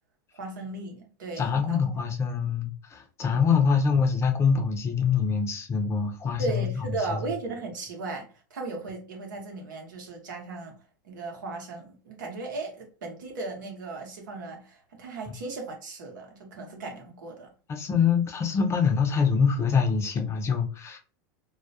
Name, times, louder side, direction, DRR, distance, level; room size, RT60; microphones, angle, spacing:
voice 1, 0.3-2.0 3.3-3.4 6.4-10.8 11.0-17.5, right 3 dB, 85° right, 0.9 m, -36 dB
voice 2, 1.4-6.8 7.1-7.2 17.7-21.0, left 6 dB, 25° left, 0.5 m, -25 dB
2.3 x 2.0 x 2.7 m
hypercardioid pair, 110°, 10 cm